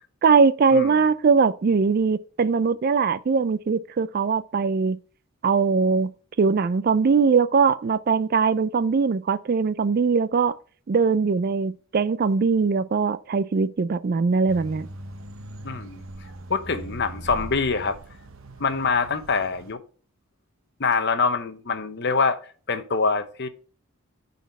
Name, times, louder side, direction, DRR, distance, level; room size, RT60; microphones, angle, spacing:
voice 1, 0.2-5.0 5.4-6.1 6.4-10.5 10.9-14.9, right 5 dB, 45° right, 0.3 m, -21 dB
sound 1, 14.5-19.7, right 2 dB, 65° right, 0.9 m, -40 dB
voice 2, 15.6-16.0 16.5-18.0 18.6-19.8 20.8-22.4 22.7-23.5, left 4 dB, 50° left, 0.8 m, -24 dB
9.3 x 4.2 x 4.2 m
head